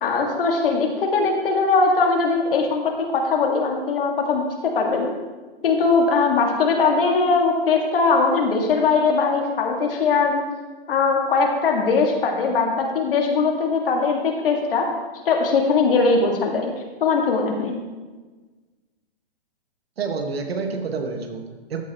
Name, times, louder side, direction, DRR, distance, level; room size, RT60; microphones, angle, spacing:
voice 1, 0.0-5.2 5.6-10.4 10.9-14.9 15.3-16.7 17.0-17.8, left 4 dB, 65° left, 1 dB, 1.9 m, -20 dB
voice 2, 20.0-21.8, right 4 dB, 80° right, 4 dB, 1.6 m, -28 dB
13.5 x 6.6 x 3.0 m, 1.3 s
hypercardioid pair, 155°, 30 cm